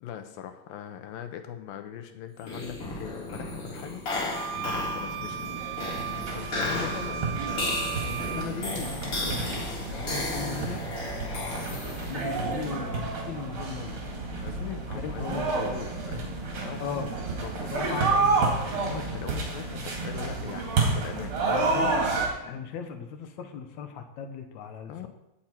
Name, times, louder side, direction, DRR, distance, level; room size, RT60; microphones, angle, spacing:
voice 1, 0.0-4.0 4.6-5.4 6.3-7.2 14.4-16.4 16.6-17.1 17.4-18.3 18.7-21.9 24.9-25.1, left 10 dB, 85° left, 7 dB, 2.7 m, -40 dB
sound 1, 2.4-12.3, left 2 dB, 45° left, 2.8 m, -34 dB
sound 2, 4.3-8.5, right 9 dB, 85° right, 1.7 m, -36 dB
sound 3, 5.3-22.3, right 3 dB, 40° right, 2.6 m, -30 dB
voice 2, 6.4-7.3 8.1-10.9 11.2-14.0 15.0-15.5 16.8-18.4 21.7-25.1, left 6 dB, 65° left, 6 dB, 2.0 m, -38 dB
16.5 x 6.5 x 4.4 m, 0.88 s
omnidirectional pair, 4.0 m